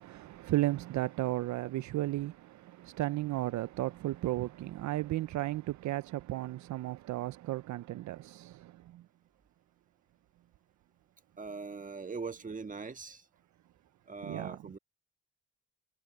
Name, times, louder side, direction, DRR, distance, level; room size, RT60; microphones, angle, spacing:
voice 1, 0.0-9.0 14.2-14.6, right 16 dB, 70° right, 0.6 m, -34 dB
voice 2, 11.4-13.2 14.1-14.8, right 4 dB, 25° right, 1.4 m, -41 dB
cardioid pair, 90°, 30 cm